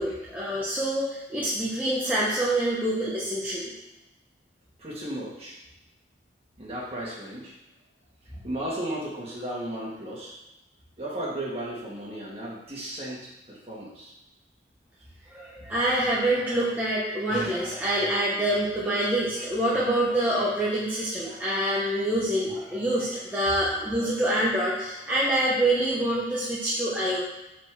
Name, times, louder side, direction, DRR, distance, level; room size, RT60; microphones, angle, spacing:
voice 1, 0.0-3.7 15.3-27.2, right 1 dB, 10° right, -8 dB, 1.1 m, -26 dB
voice 2, 4.8-5.6 6.6-7.5 8.2-10.4 11.0-14.1 15.6-15.7 23.4-23.5, right 1 dB, 35° right, -5 dB, 2.1 m, -35 dB
5.2 x 4.4 x 6.1 m, 0.98 s
head